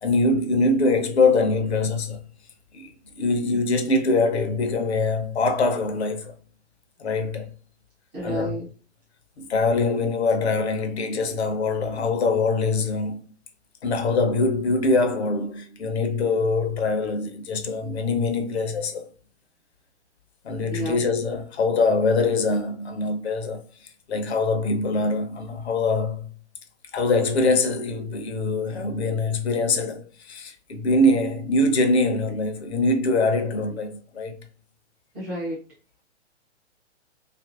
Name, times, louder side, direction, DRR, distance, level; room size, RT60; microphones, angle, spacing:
voice 1, 0.0-2.2 2.7-6.4 7.0-7.5 8.2-8.6 9.4-13.2 13.8-19.1 20.4-26.3 26.9-34.4, left 3 dB, 65° left, 0.7 m, -23 dB
voice 2, 8.1-8.6 20.7-21.0 35.1-35.6, right 1 dB, 5° right, 0.3 m, -30 dB
2.8 x 2.5 x 2.4 m
figure-of-eight pair, 120°, 35 cm